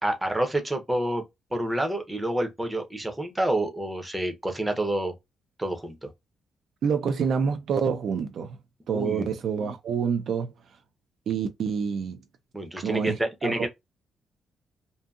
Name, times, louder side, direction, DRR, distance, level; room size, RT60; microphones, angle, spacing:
voice 1, 0.0-1.2 1.5-5.1 5.6-6.1 8.9-9.3 12.5-13.7, right 1 dB, 10° right, 0.6 m, -28 dB
voice 2, 6.8-8.6 8.9-10.5 11.3-12.2 12.8-13.7, right 6 dB, 60° right, 0.4 m, -27 dB
2.6 x 2.6 x 2.3 m
cardioid pair, 145°, 0 cm